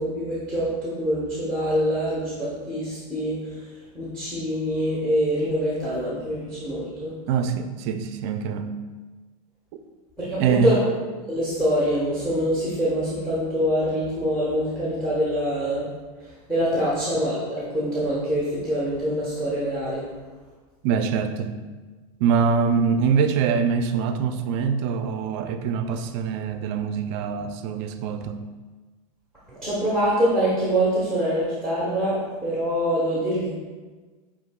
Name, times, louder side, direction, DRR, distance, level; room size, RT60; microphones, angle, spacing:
voice 1, 0.0-3.7 3.9-7.1 10.2-10.8 11.3-15.9 16.2-20.0 29.5-33.5, equal, 5° left, -8 dB, 1.1 m, -25 dB
voice 2, 7.3-8.7 9.7-9.8 10.4-10.7 20.8-21.5 22.2-28.4, right 6 dB, 50° right, 8 dB, 0.4 m, -24 dB
7.8 x 2.8 x 2.3 m, 1.3 s
supercardioid pair, 125°, 18 cm